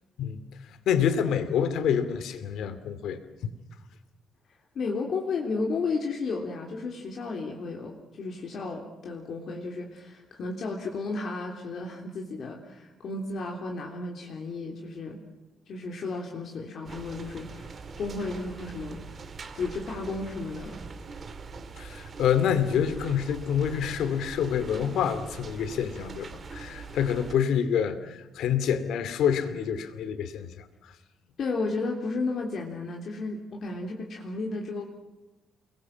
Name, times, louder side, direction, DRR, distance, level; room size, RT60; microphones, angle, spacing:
voice 1, 0.9-3.5 21.8-30.6, left 8 dB, 80° left, 12 dB, 2.5 m, -27 dB
voice 2, 4.8-15.2 15.7-19.0 19.5-20.8 31.4-34.9, left 3 dB, 45° left, 1 dB, 3.3 m, -33 dB
sound 1, 16.8-27.3, right 4 dB, 30° right, 2.4 m, -42 dB
29.5 x 22.0 x 7.4 m, 1.0 s
cardioid pair, 180°, 0 cm